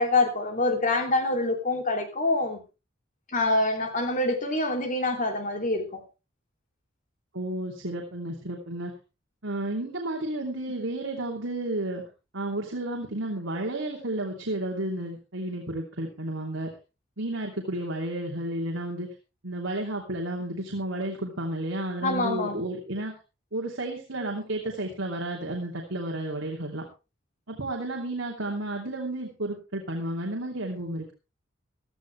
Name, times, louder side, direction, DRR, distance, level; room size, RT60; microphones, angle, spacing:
voice 1, 0.0-2.6 3.3-6.0 22.0-22.6, left 2 dB, 40° left, 3.1 m, -26 dB
voice 2, 7.3-8.9 9.4-12.0 12.3-16.7 17.2-19.1 19.4-23.1 23.5-26.9 27.5-31.1, right 1 dB, 75° right, 2.9 m, -32 dB
16.5 x 13.5 x 3.4 m
head